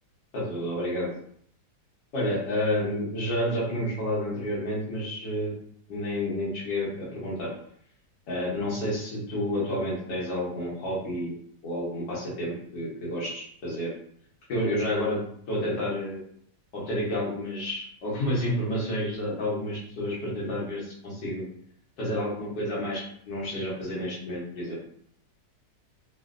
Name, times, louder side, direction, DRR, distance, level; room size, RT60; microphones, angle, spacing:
voice 1, 0.3-1.1 2.1-5.5 5.9-7.5 8.3-11.4 11.6-13.9 14.5-15.2 15.5-16.2 16.7-21.4 22.0-24.8, left 1 dB, 80° left, -5 dB, 1.7 m, -30 dB
3.7 x 2.2 x 2.4 m, 0.65 s
omnidirectional pair, 1.8 m